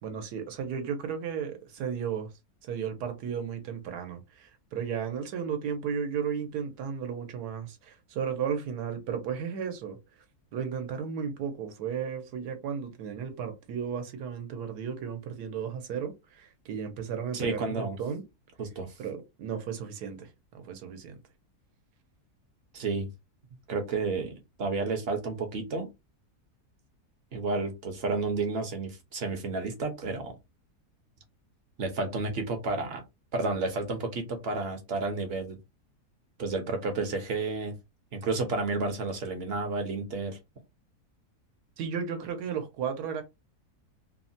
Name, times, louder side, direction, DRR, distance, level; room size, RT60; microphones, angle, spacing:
voice 1, 0.0-2.3 2.6-10.0 10.5-18.2 19.0-21.2 41.8-43.2, right 7 dB, 85° right, 1.3 m, -34 dB
voice 2, 17.3-18.0 18.6-18.9 22.7-23.1 23.7-25.9 27.3-30.3 31.8-33.0 33.3-35.6 36.4-37.8 38.1-40.4, right 3 dB, 55° right, 0.7 m, -31 dB
3.1 x 2.1 x 2.6 m
omnidirectional pair, 1.7 m